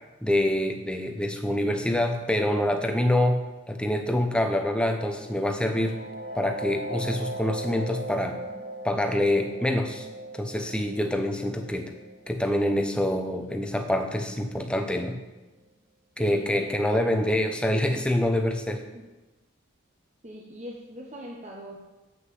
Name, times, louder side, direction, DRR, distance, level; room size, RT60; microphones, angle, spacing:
voice 1, 0.2-3.4 3.7-6.0 6.3-8.4 8.8-10.1 10.4-11.9 12.3-15.2 16.2-18.8, left 1 dB, 5° left, 5 dB, 0.7 m, -26 dB
sound 1, 5.1-14.5, right 1 dB, 50° right, 1.2 m, -39 dB
voice 2, 16.2-16.7 18.9-19.0 20.2-21.9, equal, 30° right, -2 dB, 1.1 m, -42 dB
7.8 x 6.5 x 7.7 m, 1.1 s
head